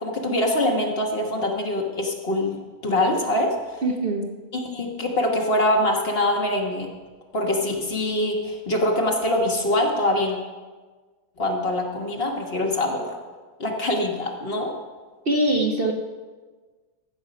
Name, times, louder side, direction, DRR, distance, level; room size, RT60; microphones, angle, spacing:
voice 1, 0.0-3.8 4.5-6.9 7.3-10.4 11.4-13.2 13.6-14.7, left 1 dB, 40° left, 1 dB, 1.4 m, -24 dB
voice 2, 3.8-4.3 15.3-15.9, right 1 dB, 45° right, 1 dB, 0.8 m, -22 dB
14.0 x 7.0 x 5.1 m, 1.4 s
omnidirectional pair, 1.6 m